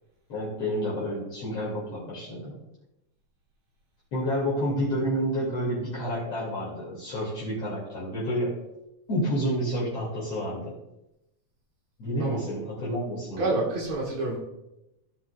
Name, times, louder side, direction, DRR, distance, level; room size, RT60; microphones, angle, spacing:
voice 1, 0.3-2.6 4.1-8.6 9.1-10.8 12.0-13.6, equal, 50° left, -7 dB, 3.4 m, -29 dB
voice 2, 13.4-14.4, right 2 dB, 70° right, -4 dB, 2.8 m, -28 dB
17.0 x 5.7 x 2.3 m, 0.91 s
omnidirectional pair, 3.4 m